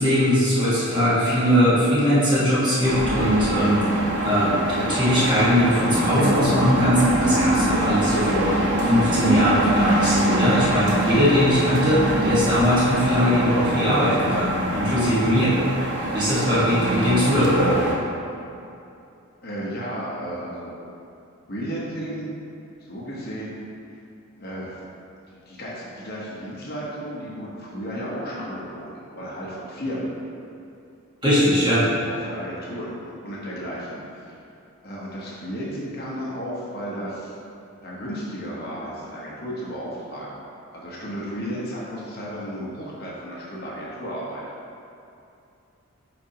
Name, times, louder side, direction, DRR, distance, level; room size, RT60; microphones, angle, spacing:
voice 1, 0.0-3.9 4.2-8.6 8.8-15.6 16.1-17.7 31.2-31.9, equal, 20° right, -10 dB, 1.5 m, -20 dB
sound 1, 2.8-17.9, right 1 dB, 50° right, 0.8 m, -24 dB
voice 2, 19.4-20.8 21.5-22.3 22.9-23.5 24.4-24.8 25.3-30.1 32.0-34.0 34.8-37.4 37.8-40.4 40.7-44.4, equal, 45° left, -6 dB, 1.1 m, -33 dB
8.2 x 4.4 x 2.9 m, 2.7 s
head